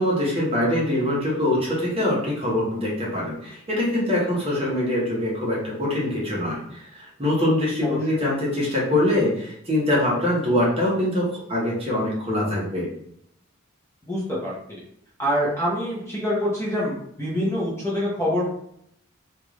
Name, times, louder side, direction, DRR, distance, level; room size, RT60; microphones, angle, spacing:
voice 1, 0.0-12.9, left 1 dB, 30° right, -6 dB, 1.1 m, -23 dB
voice 2, 14.1-14.8 15.2-18.5, equal, 15° left, -6 dB, 0.8 m, -25 dB
3.2 x 2.5 x 3.1 m, 0.70 s
head